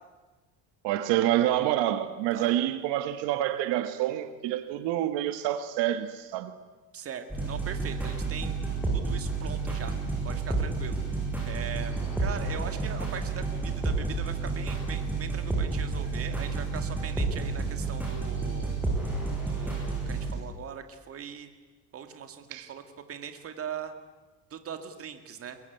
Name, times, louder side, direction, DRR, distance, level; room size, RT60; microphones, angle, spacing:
voice 1, 0.8-6.6 22.5-22.7, right 12 dB, 70° right, 1.7 m, -27 dB
voice 2, 6.9-8.6 8.9-9.9 10.2-11.0 11.5-11.9 12.2-18.7 19.4-21.5 21.9-22.8 23.1-24.0 24.5-25.6, right 8 dB, 30° right, 2.2 m, -40 dB
sound 1, 7.3-20.3, right 3 dB, 5° right, 6.8 m, -30 dB
23.0 x 21.5 x 9.3 m
cardioid pair, 155°, 44 cm